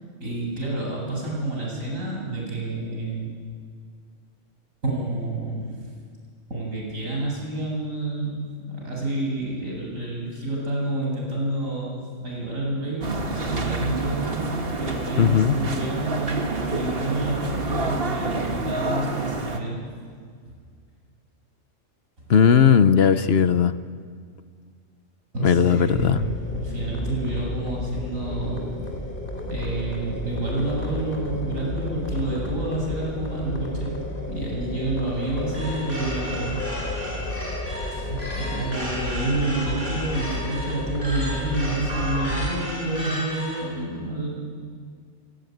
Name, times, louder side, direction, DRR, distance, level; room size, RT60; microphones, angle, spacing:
voice 1, 0.2-3.3 4.8-5.8 6.5-14.5 14.8-19.8 22.2-22.3 25.3-28.7 29.4-34.0 34.3-36.6 37.9-44.3, right 2 dB, 85° right, -3 dB, 8.3 m, -29 dB
sound 1, 13.0-19.6, right 3 dB, 45° right, 1.9 m, -28 dB
voice 2, 15.2-15.5 22.3-23.7 25.4-26.2, left 7 dB, 55° left, 12 dB, 1.0 m, -17 dB
sound 2, 25.9-42.5, left 2 dB, 40° left, 3.7 m, -32 dB
sound 3, 35.5-43.7, equal, 65° right, 8.2 m, -34 dB
28.5 x 17.0 x 9.4 m, 2.1 s
omnidirectional pair, 1.3 m